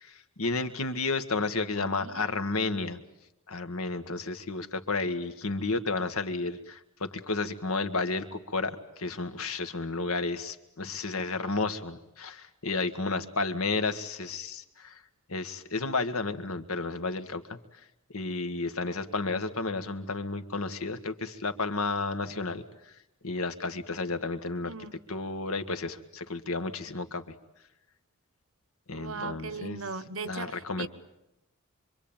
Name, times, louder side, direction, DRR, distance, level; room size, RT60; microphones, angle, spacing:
voice 1, 0.0-3.0 3.5-15.0 15.3-17.6 18.1-22.6 23.2-24.7 25.1-27.2 28.9-29.8 30.3-30.9, left 3 dB, 80° left, 1.8 m, -32 dB
voice 2, 1.8-2.4 24.6-25.0 28.9-30.9, right 4 dB, 65° right, 1.2 m, -39 dB
26.0 x 24.5 x 9.0 m
head